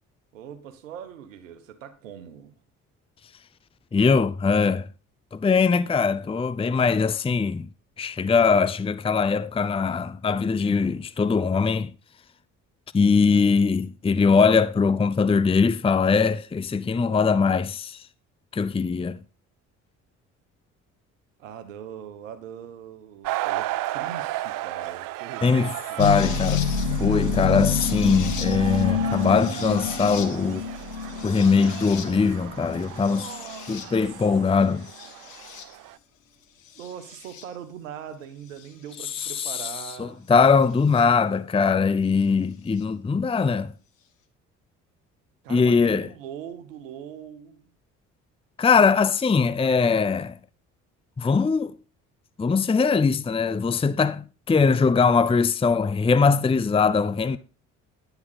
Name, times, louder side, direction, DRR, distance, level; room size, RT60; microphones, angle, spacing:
voice 1, 0.3-2.5 21.4-23.7 23.9-26.0 33.0-34.3 36.7-40.3 45.4-47.7 57.2-57.4, right 9 dB, 85° right, 1.3 m, -41 dB
voice 2, 3.9-4.9 5.3-7.7 8.0-11.9 12.9-18.0 18.5-19.2 25.4-25.7 26.0-26.7 27.0-30.6 31.2-33.3 33.7-34.9 39.1-39.7 40.0-43.7 45.5-46.1 48.6-50.4 51.2-51.7 52.4-57.4, left 5 dB, 15° left, 0.6 m, -21 dB
sound 1, 23.2-36.0, right 16 dB, 60° right, 0.7 m, -35 dB
sound 2, 26.0-34.1 34.9-35.6 36.8-37.4 39.2-39.3 41.0-41.1, left 6 dB, 85° left, 1.4 m, -28 dB
10.0 x 9.9 x 4.1 m
hypercardioid pair, 55°, 38 cm